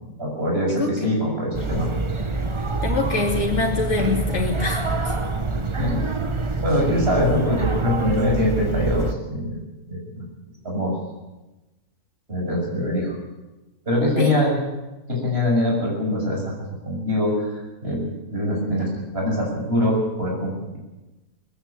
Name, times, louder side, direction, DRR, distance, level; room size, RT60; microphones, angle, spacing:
voice 1, 0.2-1.9 5.8-6.0 6.6-9.5 9.9-10.3 10.6-10.9 12.3-13.1 13.9-14.6 15.1-16.4 16.8-20.8, left 1 dB, 40° right, -1 dB, 7.5 m, -23 dB
sound 1, 1.5-9.1, right 3 dB, 25° right, 0.9 m, -26 dB
voice 2, 2.8-5.1 14.2-14.3, left 3 dB, 50° left, -1 dB, 3.1 m, -24 dB
20.0 x 15.5 x 8.7 m, 1.1 s
omnidirectional pair, 1.6 m